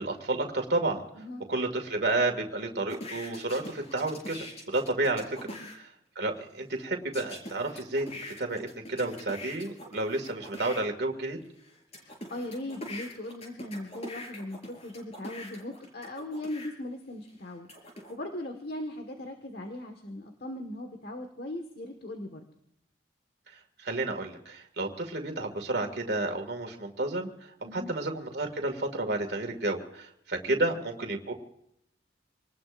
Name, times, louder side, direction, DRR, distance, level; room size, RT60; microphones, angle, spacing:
voice 1, 0.0-1.0 1.5-4.4 4.7-5.4 5.8-5.9 6.2-11.4 23.8-31.3, right 2 dB, 55° right, 3 dB, 2.2 m, -31 dB
sound 1, 2.9-5.8 7.1-10.8 11.4-16.7 17.3-18.1, left 1 dB, 30° left, 5.2 m, -43 dB
voice 2, 11.9-17.7 18.1-22.4 27.6-27.9 30.5-30.6, left 1 dB, 50° left, 4 dB, 1.6 m, -39 dB
27.0 x 19.5 x 2.6 m, 0.75 s
head